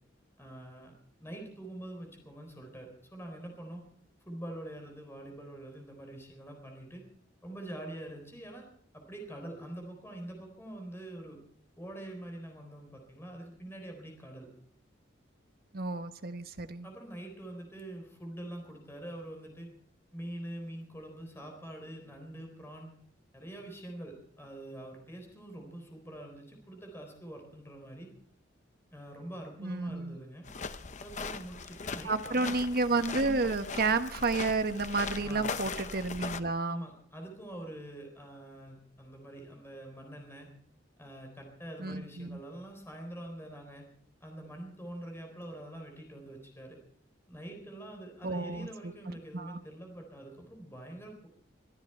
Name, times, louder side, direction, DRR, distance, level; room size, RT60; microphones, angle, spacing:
voice 1, 0.4-0.9 1.2-3.8 4.3-7.0 7.4-8.6 8.9-11.4 11.8-14.5 16.8-19.7 20.1-23.0 23.3-28.1 28.9-30.5 31.0-32.5 35.2-35.5 36.6-40.5 41.0-43.9 44.2-46.8 47.3-51.3, right 1 dB, 15° left, 3 dB, 4.0 m, -45 dB
voice 2, 15.7-16.9 29.6-30.2 32.0-36.9 41.8-42.4 48.2-48.9 49.3-49.6, right 3 dB, 50° right, 9 dB, 1.1 m, -31 dB
sound 1, 30.5-36.4, left 5 dB, 40° left, 0.7 m, -39 dB
23.0 x 13.5 x 4.5 m, 0.63 s
head